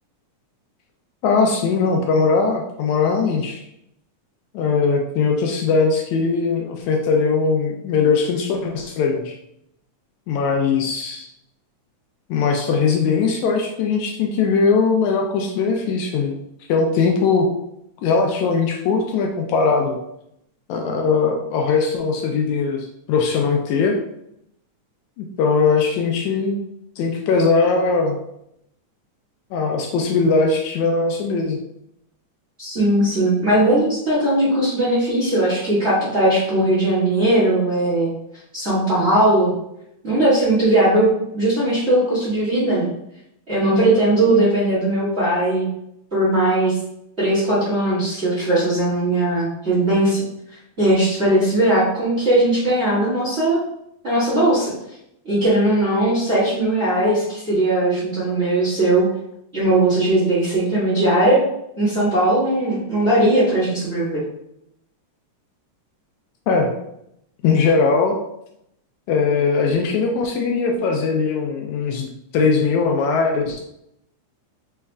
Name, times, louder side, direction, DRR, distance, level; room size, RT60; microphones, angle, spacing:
voice 1, 1.2-3.6 4.5-9.3 10.3-11.3 12.3-16.3 16.7-17.5 18.0-20.0 20.7-24.0 25.2-26.6 27.0-28.2 29.5-31.6 66.5-66.7 67.4-68.2 69.1-73.6, left 4 dB, 80° left, 2 dB, 1.8 m, -20 dB
voice 2, 32.6-38.1 38.5-39.5 40.0-42.9 43.5-45.7 46.1-46.8 47.2-50.2 50.8-53.6 54.0-54.7 55.2-59.1 59.5-61.4 61.8-64.2, right 1 dB, 30° right, -10 dB, 1.4 m, -18 dB
4.7 x 4.1 x 2.3 m, 0.78 s
omnidirectional pair, 3.5 m